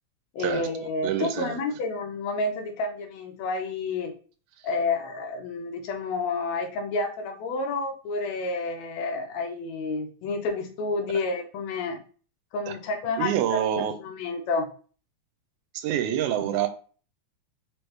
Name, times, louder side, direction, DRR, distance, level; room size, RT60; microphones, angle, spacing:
voice 1, 0.3-4.1 4.6-12.0 12.5-13.6 14.0-14.7, left 3 dB, 75° left, 3 dB, 1.8 m, -30 dB
voice 2, 1.0-1.6 12.7-12.8 13.2-14.0 15.7-16.7, right 10 dB, 85° right, 8 dB, 2.0 m, -26 dB
4.7 x 3.1 x 3.2 m, 0.40 s
omnidirectional pair, 3.4 m